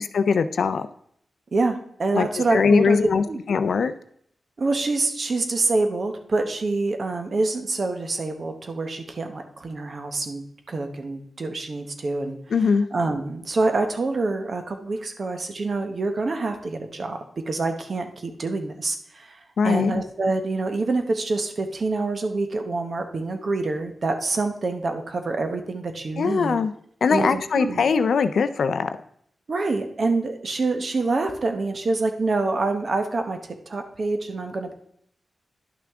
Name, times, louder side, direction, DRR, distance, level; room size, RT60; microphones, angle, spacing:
voice 1, 0.1-0.9 2.1-3.9 12.5-12.9 19.6-20.0 26.2-26.7 27.0-28.9, left 5 dB, 75° left, 10 dB, 0.4 m, -21 dB
voice 2, 1.5-3.0 3.3-3.4 4.6-12.4 12.9-26.6 27.1-27.9 29.5-33.4 33.7-34.7, right 3 dB, 50° right, 6 dB, 0.9 m, -26 dB
10.5 x 5.9 x 3.5 m, 0.68 s
wide cardioid pair, 115°, 0 cm